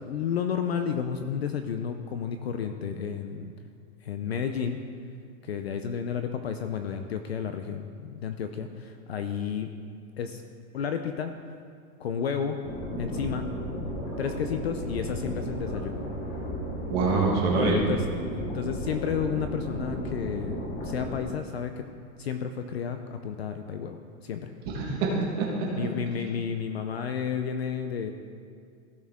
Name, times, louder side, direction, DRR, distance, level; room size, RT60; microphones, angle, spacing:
voice 1, 0.0-3.5 4.0-4.8 5.4-9.7 10.2-10.4 10.7-11.3 12.0-12.7 13.0-13.6 14.2-16.0 17.5-18.0 18.3-21.9 22.2-24.5 25.8-28.1, left 7 dB, 45° left, 7 dB, 0.5 m, -32 dB
sound 1, 12.6-21.2, equal, 10° left, 0.7 m, -34 dB
voice 2, 16.9-17.8 24.7-25.9, right 3 dB, 20° right, -3 dB, 1.5 m, -25 dB
16.0 x 6.5 x 3.6 m, 2.2 s
supercardioid pair, 175°, 44 cm